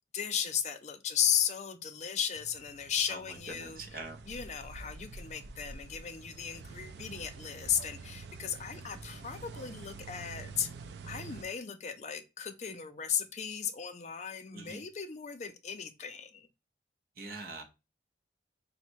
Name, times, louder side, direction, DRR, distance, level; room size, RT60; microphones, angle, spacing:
voice 1, 0.1-4.0 4.3-10.7 11.0-16.5, left 8 dB, 40° left, 0.4 m, -35 dB
sound 1, 2.3-11.4, right 4 dB, 70° right, 0.4 m, -47 dB
voice 2, 3.6-4.2 14.5-14.8 17.2-17.6, right 3 dB, 50° right, 0.8 m, -43 dB
4.0 x 2.1 x 4.5 m
head